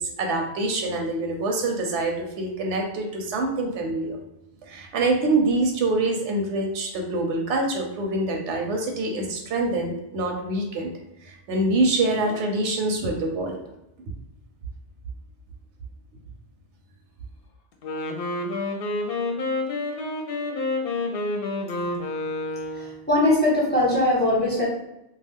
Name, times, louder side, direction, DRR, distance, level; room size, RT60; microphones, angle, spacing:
voice 1, 0.0-4.2 4.6-10.9 11.2-13.6, right 2 dB, 85° right, 2 dB, 0.9 m, -25 dB
Wind instrument woodwind instrument, 17.7-23.0, left 2 dB, 65° left, 0.7 m, -29 dB
voice 2, 22.7-24.6, left 1 dB, 10° left, -5 dB, 0.8 m, -21 dB
2.3 x 2.3 x 3.4 m, 0.87 s
omnidirectional pair, 1.1 m